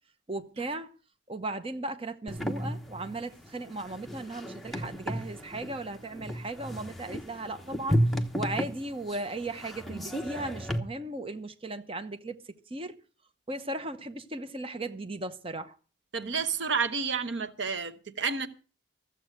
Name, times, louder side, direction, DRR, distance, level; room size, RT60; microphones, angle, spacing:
voice 1, 0.3-0.9 1.3-12.4 12.7-12.9 13.5-15.8, right 2 dB, 30° right, 0.8 m, -37 dB
sound 1, 2.3-10.8, equal, ahead, 1.1 m, -33 dB
voice 2, 16.1-18.5, right 5 dB, 75° right, 1.0 m, -30 dB
14.5 x 7.8 x 7.8 m
head